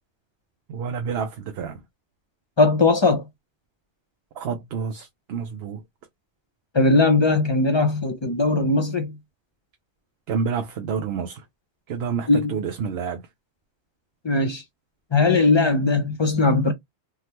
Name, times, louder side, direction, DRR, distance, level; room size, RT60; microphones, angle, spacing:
voice 1, 0.7-1.8 4.4-5.8 10.3-11.4 11.9-13.2, right 6 dB, 75° right, 0.9 m, -28 dB
voice 2, 2.6-3.3 6.7-9.2 12.3-12.5 14.2-14.6 15.1-16.7, left 3 dB, 35° left, 0.5 m, -19 dB
3.6 x 2.1 x 2.8 m
omnidirectional pair, 1.1 m